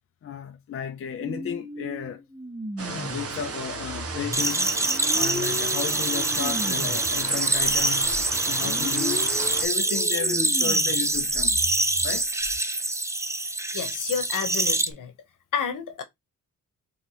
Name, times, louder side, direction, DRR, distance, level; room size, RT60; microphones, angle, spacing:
voice 1, 0.2-2.2 2.8-4.7 5.1-9.3 9.6-12.3, left 8 dB, 45° left, 0.5 m, -34 dB
sound 1, 1.2-7.2 7.6-12.6, equal, 25° right, 1.5 m, -37 dB
sound 2, 2.8-9.7, right 5 dB, 45° right, 1.0 m, -35 dB
sound 3, 4.3-14.9, right 2 dB, 10° right, 0.4 m, -25 dB
voice 2, 13.7-15.1 15.5-16.0, left 7 dB, 70° left, 1.0 m, -30 dB
4.5 x 3.2 x 2.9 m
wide cardioid pair, 130°, 33 cm